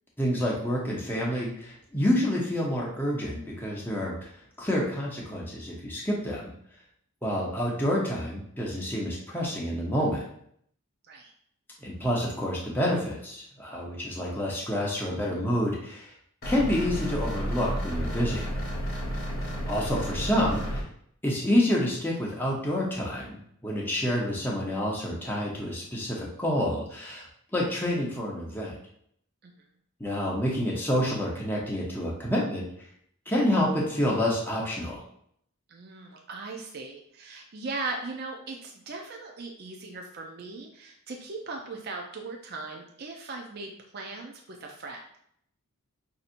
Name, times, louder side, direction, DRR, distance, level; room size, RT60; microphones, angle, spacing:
voice 1, 0.2-4.3 4.6-6.5 7.2-10.3 11.8-16.1 16.5-18.5 19.7-20.8 21.2-27.3 27.5-28.8 30.0-32.7 33.3-35.0, left 1 dB, 10° left, -4 dB, 0.8 m, -28 dB
sound 1, 16.4-20.8, equal, 45° left, 1.0 m, -32 dB
voice 2, 35.7-45.2, right 3 dB, 45° right, 1 dB, 0.4 m, -39 dB
5.7 x 2.7 x 2.5 m, 0.68 s
head